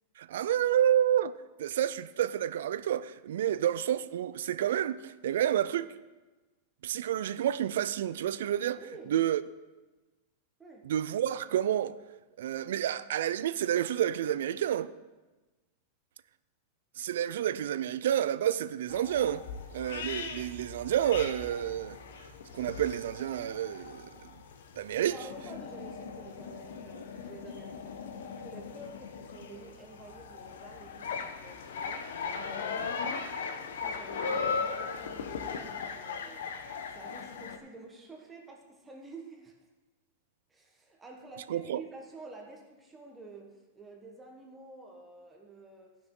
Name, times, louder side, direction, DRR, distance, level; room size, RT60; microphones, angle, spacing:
voice 1, 0.2-5.9 6.8-8.8 9.1-9.4 10.8-12.0 12.4-14.9 17.0-19.4 19.7-22.0 22.5-24.3 24.8-25.2 41.5-41.8, right 10 dB, 80° right, 0.4 m, -29 dB
voice 2, 8.8-9.2 10.6-10.9 25.0-28.0 28.4-33.4 33.7-36.5 36.9-39.5 40.5-46.0, right 3 dB, 10° right, 1.2 m, -49 dB
sound 1, 18.9-37.6, left 5 dB, 85° left, 1.0 m, -38 dB
17.0 x 6.0 x 3.8 m
supercardioid pair, 155°, 0 cm